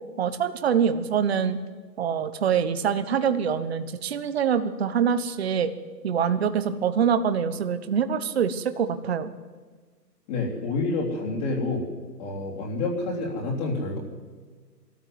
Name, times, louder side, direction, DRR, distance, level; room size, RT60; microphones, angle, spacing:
voice 1, 0.2-1.6 2.0-5.7 6.0-9.3, right 7 dB, 40° right, 10 dB, 1.2 m, -25 dB
voice 2, 10.3-11.9 12.2-14.0, left 3 dB, 25° left, -3 dB, 3.5 m, -28 dB
22.5 x 14.0 x 9.4 m, 1.5 s
hypercardioid pair, 160°, 50 cm